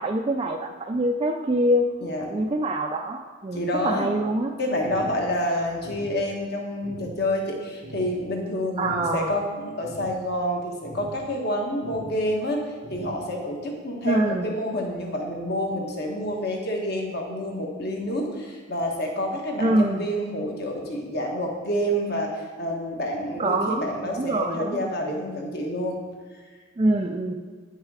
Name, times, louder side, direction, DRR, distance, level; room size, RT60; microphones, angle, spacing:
voice 1, 0.0-1.9 2.3-4.5 8.8-9.3 14.0-14.5 19.6-20.1 23.4-24.8 26.8-27.3, right 1 dB, 25° right, 2 dB, 0.3 m, -25 dB
voice 2, 2.0-2.3 3.5-4.1 4.6-26.0, equal, 50° left, 1 dB, 1.4 m, -28 dB
sound 1, 4.8-5.2 5.8-6.2 6.8-7.2 7.8-8.2 8.8-9.2 9.8-10.2 10.8-11.2 11.8-12.2 12.8-13.2, right 2 dB, 85° right, 0.8 m, -41 dB
9.0 x 6.4 x 4.8 m, 1.4 s
head